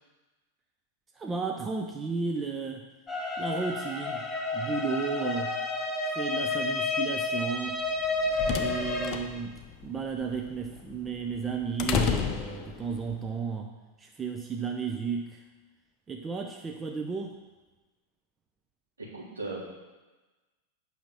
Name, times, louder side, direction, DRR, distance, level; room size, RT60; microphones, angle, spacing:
voice 1, 1.2-2.9 3.4-5.6 6.0-7.9 8.5-15.4 16.1-17.4, right 5 dB, 20° right, 3 dB, 0.8 m, -34 dB
sound 1, 3.1-9.1, left 3 dB, 15° left, 1.2 m, -30 dB
sound 2, 7.9-13.2, left 7 dB, 35° left, 0.7 m, -33 dB
voice 2, 19.0-19.6, right 3 dB, 75° right, -7 dB, 3.5 m, -37 dB
8.6 x 5.9 x 5.5 m, 1.2 s
figure-of-eight pair, 90°, 0 cm